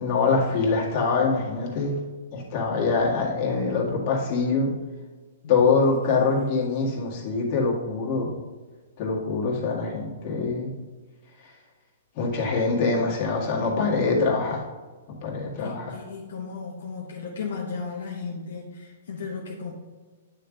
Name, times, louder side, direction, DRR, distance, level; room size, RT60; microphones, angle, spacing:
voice 1, 0.0-2.0 2.3-4.7 5.5-8.3 9.0-10.7 12.2-14.6 15.2-16.0, left 4 dB, 45° left, -3 dB, 1.9 m, -24 dB
voice 2, 6.1-6.4 15.6-19.7, left 5 dB, 75° left, -1 dB, 1.0 m, -35 dB
9.1 x 3.4 x 3.9 m, 1.3 s
hypercardioid pair, 135°, 0 cm